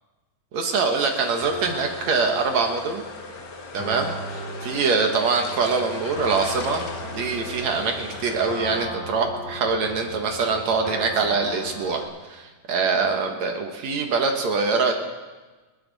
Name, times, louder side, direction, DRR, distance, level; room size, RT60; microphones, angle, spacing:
voice 1, 0.5-3.0 3.7-12.0 12.3-14.9, right 4 dB, 65° right, 4 dB, 2.3 m, -24 dB
sound 1, 0.9-8.8, left 4 dB, 50° left, 1.2 m, -39 dB
sound 2, 1.4-12.1, equal, 30° left, 1.0 m, -37 dB
28.5 x 11.0 x 4.1 m, 1.3 s
omnidirectional pair, 3.7 m